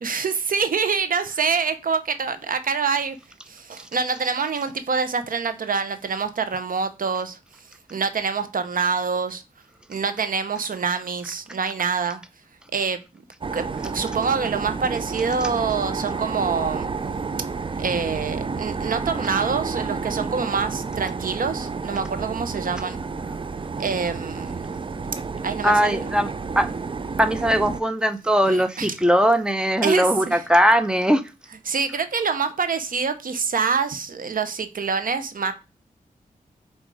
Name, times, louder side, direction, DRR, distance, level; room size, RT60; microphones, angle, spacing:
voice 1, 0.0-3.2 3.5-7.4 7.9-9.4 9.9-12.2 12.7-13.0 13.5-13.6 13.9-16.9 17.8-23.0 23.8-24.6 25.4-26.2 28.5-29.0 29.8-30.5 31.6-35.5, right 5 dB, 70° right, 0.8 m, -26 dB
sound 1, 13.4-27.8, right 4 dB, 35° right, 0.5 m, -30 dB
voice 2, 25.6-26.3 26.6-26.7 27.2-31.2, equal, 5° right, 0.8 m, -19 dB
7.6 x 2.7 x 4.7 m
cardioid pair, 70°, 15 cm